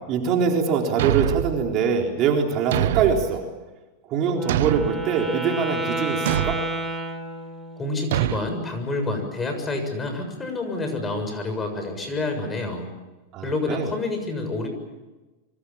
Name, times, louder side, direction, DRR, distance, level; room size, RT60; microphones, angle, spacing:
voice 1, 0.1-3.4 4.1-6.6 13.3-13.9, right 6 dB, 40° right, 1 dB, 4.0 m, -23 dB
Thump thud, 1.0-1.6 2.7-3.3 4.5-5.0 6.2-6.7 8.1-8.4, right 13 dB, 75° right, 0.8 m, -24 dB
Wind instrument woodwind instrument, 4.3-7.9, right 1 dB, 5° right, 3.7 m, -30 dB
voice 2, 7.8-12.9 13.4-14.7, left 2 dB, 15° left, 6 dB, 7.1 m, -28 dB
27.0 x 24.5 x 7.3 m, 1.1 s
supercardioid pair, 135°, 0 cm